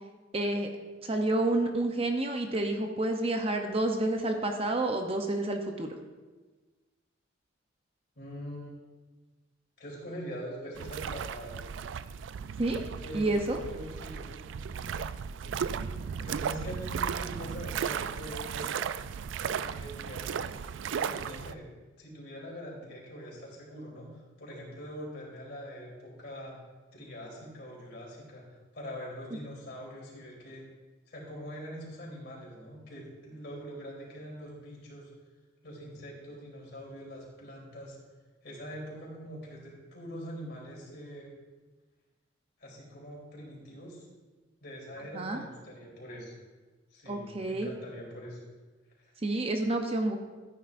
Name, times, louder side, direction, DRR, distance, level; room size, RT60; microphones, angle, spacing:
voice 1, 0.3-0.7 1.0-6.0 12.6-12.8 13.1-13.6 45.1-45.4 47.1-47.7 49.2-50.2, right 2 dB, 30° right, 4 dB, 0.7 m, -29 dB
voice 2, 8.1-8.7 9.8-11.6 13.0-14.4 14.7-15.0 15.4-15.6 16.2-18.7 19.4-20.7 20.9-21.7 22.0-26.6 26.9-30.7 31.1-35.1 35.6-38.0 38.4-41.3 42.6-44.1 44.6-46.3 46.9-48.4 49.0-49.1, equal, 55° left, -3 dB, 3.3 m, -43 dB
sound 1, 10.8-21.5, right 7 dB, 70° right, 0.3 m, -35 dB
14.0 x 9.4 x 2.5 m, 1.3 s
head